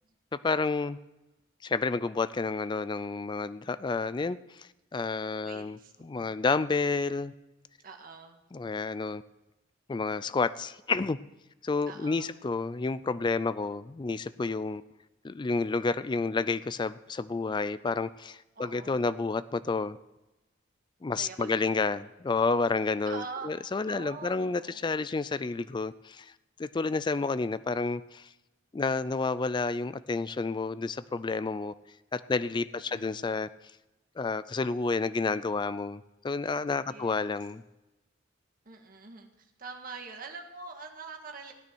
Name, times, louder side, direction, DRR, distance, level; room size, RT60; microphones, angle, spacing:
voice 1, 0.3-1.0 1.6-7.3 8.5-9.2 9.9-11.2 11.6-14.8 15.2-20.0 21.0-26.3 26.6-28.3 28.7-31.7 32.1-33.5 34.2-37.6, left 4 dB, 25° left, 15 dB, 0.3 m, -30 dB
voice 2, 5.4-6.4 7.8-8.4 11.8-12.3 18.6-19.0 21.2-21.7 23.1-23.6 23.9-24.8 32.9-33.3 36.9-37.4 38.7-41.5, right 4 dB, 50° right, 3 dB, 1.7 m, -44 dB
16.5 x 9.5 x 4.5 m, 1.0 s
head